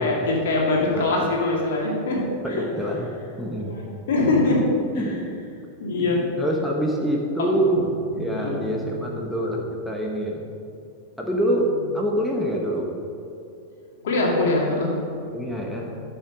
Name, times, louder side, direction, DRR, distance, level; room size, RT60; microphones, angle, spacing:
voice 1, 0.0-2.2 2.5-2.6 3.5-3.8 4.1-4.6 5.8-6.2 7.4-7.6 8.2-8.6 14.0-14.9, left 2 dB, 60° left, -2 dB, 2.3 m, -23 dB
voice 2, 0.9-1.3 2.4-3.7 4.9-5.4 6.0-7.9 8.1-10.4 11.2-13.0 15.3-15.9, right 1 dB, ahead, -2 dB, 1.2 m, -26 dB
13.5 x 5.7 x 5.2 m, 2.6 s
figure-of-eight pair, 90°, 0 cm